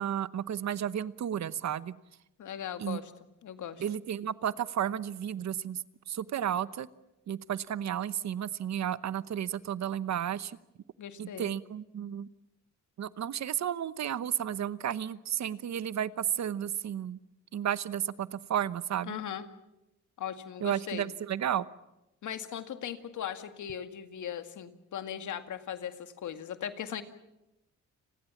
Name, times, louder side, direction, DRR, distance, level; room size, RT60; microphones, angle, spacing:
voice 1, 0.0-1.9 2.8-3.0 3.8-6.9 7.3-10.6 11.2-12.3 13.0-17.2 17.5-19.2 20.6-21.7, right 10 dB, 65° right, 16 dB, 1.0 m, -33 dB
voice 2, 2.4-3.1 3.4-3.8 11.0-11.6 19.0-19.4 20.2-21.1 22.2-27.0, left 9 dB, 75° left, 9 dB, 2.1 m, -38 dB
30.0 x 21.0 x 7.2 m, 0.94 s
cardioid pair, 100°, 30 cm